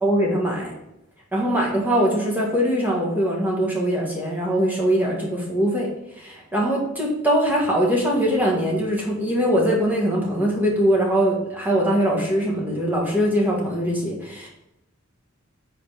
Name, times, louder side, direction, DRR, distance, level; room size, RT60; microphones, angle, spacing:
voice 1, 0.0-0.7 1.3-5.9 6.2-14.5, equal, 10° right, -3 dB, 1.6 m, -22 dB
5.1 x 4.2 x 5.6 m, 0.85 s
head